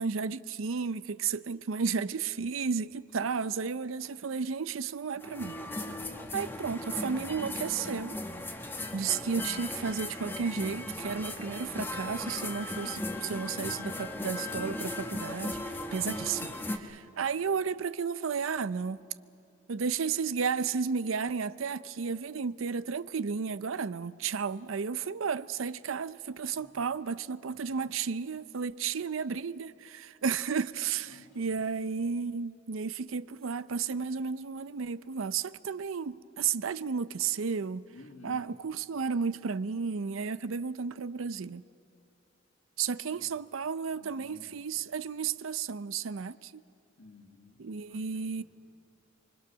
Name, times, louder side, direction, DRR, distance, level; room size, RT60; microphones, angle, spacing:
voice 1, 0.0-5.5 6.3-8.2 8.9-19.0 19.7-37.8 38.2-41.6 42.8-46.6 47.6-48.4, right 5 dB, 90° right, 0.6 m, -33 dB
sound 1, 5.2-16.8, left 1 dB, 10° left, 1.3 m, -37 dB
voice 2, 5.9-6.4 13.6-15.0 26.5-26.8 27.5-27.7 31.0-31.6 37.9-38.6 43.1-43.3 43.9-44.7 47.0-48.4, left 2 dB, 75° left, 2.4 m, -54 dB
25.5 x 24.5 x 6.2 m
head